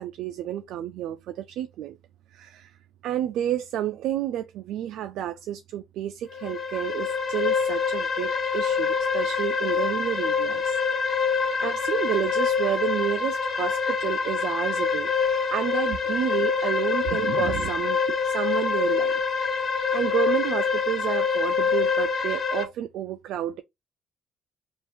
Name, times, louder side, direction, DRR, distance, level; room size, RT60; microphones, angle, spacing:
voice 1, 0.0-2.0 2.3-2.8 3.0-10.8 11.6-19.1 19.7-23.6, right 11 dB, 85° right, 0.4 m, -30 dB
sound 1, 6.3-22.6, left 5 dB, 50° left, 1.2 m, -25 dB
3.4 x 2.5 x 4.3 m
cardioid pair, 90°, 0 cm